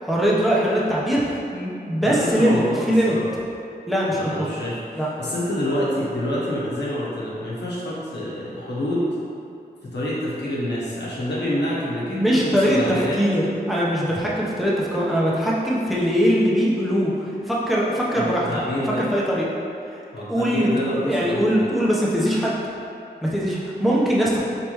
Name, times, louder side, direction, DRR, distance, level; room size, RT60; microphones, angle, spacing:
voice 1, 0.0-2.6 2.9-3.1 3.9-4.5 5.0-5.1 12.1-18.5 19.1-19.5 20.3-22.6 23.2-24.4, equal, ahead, -6 dB, 0.9 m, -21 dB
voice 2, 2.0-2.8 3.1-3.2 4.1-9.1 9.9-13.2 18.1-19.1 20.1-21.7, left 1 dB, 85° left, -7 dB, 1.1 m, -27 dB
4.2 x 3.5 x 3.1 m, 2.6 s
wide cardioid pair, 65°, 17 cm